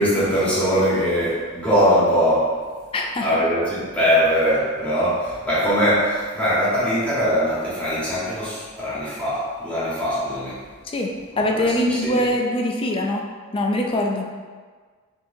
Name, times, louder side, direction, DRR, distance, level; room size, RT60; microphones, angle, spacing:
voice 1, 0.0-2.5 3.2-10.6 11.4-12.3, equal, 5° left, -10 dB, 1.2 m, -21 dB
voice 2, 2.9-3.3 10.9-13.2 13.5-14.3, left 1 dB, 25° left, 1 dB, 0.4 m, -23 dB
5.6 x 2.8 x 2.7 m, 1.5 s
head